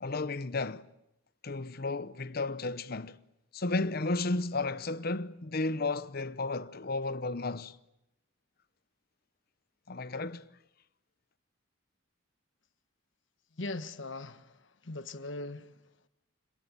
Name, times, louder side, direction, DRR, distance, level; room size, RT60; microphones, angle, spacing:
voice 1, 0.0-0.9 1.4-3.2 3.5-7.8 9.9-10.5, left 3 dB, 50° left, 0.9 m, -33 dB
voice 2, 13.6-15.7, left 2 dB, 65° left, 1.3 m, -40 dB
27.0 x 21.5 x 8.7 m
head